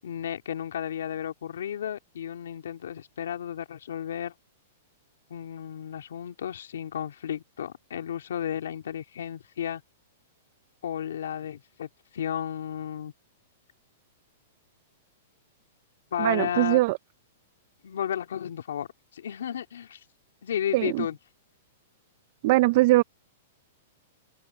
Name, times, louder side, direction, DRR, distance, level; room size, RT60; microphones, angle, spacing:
voice 1, 0.0-4.3 5.3-9.8 10.8-13.1 16.1-16.8 17.8-18.9 19.1-20.0 20.4-21.2, left 9 dB, 85° left, 2.8 m, -33 dB
voice 2, 16.2-17.0 20.7-21.1 22.4-23.0, right 19 dB, 50° right, 0.5 m, -21 dB
open air
hypercardioid pair, 145°, 0 cm